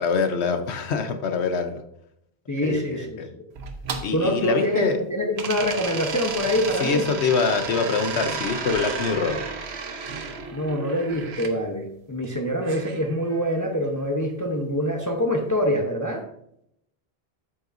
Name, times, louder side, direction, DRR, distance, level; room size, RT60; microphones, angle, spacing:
voice 1, 0.0-1.8 2.6-3.3 4.0-5.0 6.8-9.4, left 5 dB, 90° left, 8 dB, 1.2 m, -24 dB
voice 2, 2.5-3.4 4.1-7.1 10.5-16.2, equal, 20° left, 2 dB, 0.8 m, -25 dB
sound 1, 3.6-5.0 5.4-11.5 12.6-13.7, right 5 dB, 75° right, 1.1 m, -33 dB
8.5 x 7.8 x 2.6 m, 0.74 s
omnidirectional pair, 1.1 m